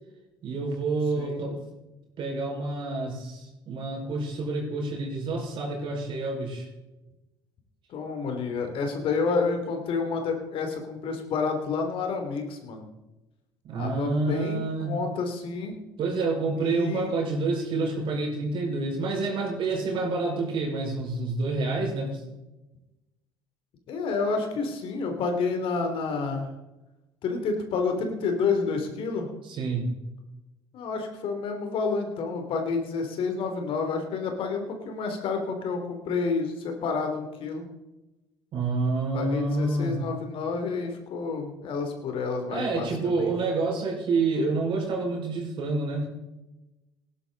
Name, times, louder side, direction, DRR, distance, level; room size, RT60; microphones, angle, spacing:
voice 1, 0.4-1.6 2.2-6.7 13.6-15.0 16.0-22.2 29.4-29.9 38.5-40.0 42.5-46.1, right 3 dB, 55° right, 0 dB, 5.6 m, -28 dB
voice 2, 7.9-12.8 13.8-15.8 16.6-17.1 23.9-26.5 27.2-29.3 30.7-37.6 39.1-43.3, left 4 dB, 60° left, 4 dB, 3.2 m, -29 dB
18.0 x 11.5 x 4.1 m, 1.0 s
hypercardioid pair, 65°, 10 cm